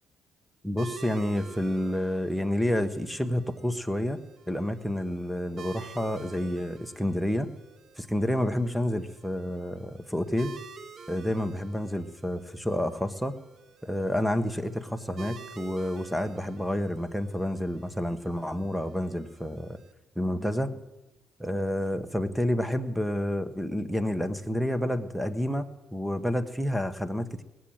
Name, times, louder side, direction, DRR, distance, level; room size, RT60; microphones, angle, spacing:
voice 1, 0.6-7.5 8.0-10.6 11.1-13.3 13.8-19.8 20.2-20.8 21.4-27.4, equal, ahead, 12 dB, 1.0 m, -29 dB
sound 1, 0.8-19.9, right 4 dB, 60° right, 1.0 m, -49 dB
19.0 x 7.6 x 8.7 m, 1.0 s
cardioid pair, 90°, 0 cm